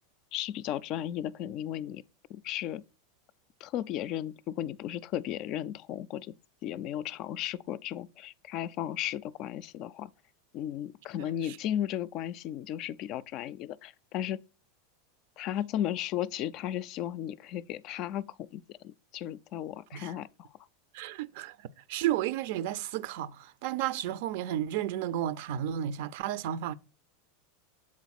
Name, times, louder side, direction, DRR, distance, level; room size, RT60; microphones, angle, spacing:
voice 1, 0.3-2.0 2.3-2.8 3.6-6.3 6.6-10.1 10.5-14.4 15.4-20.5, left 11 dB, 50° left, 0.4 m, -35 dB
voice 2, 20.9-26.7, right 11 dB, 60° right, 0.5 m, -33 dB
7.5 x 4.1 x 4.1 m
hypercardioid pair, 90°, 0 cm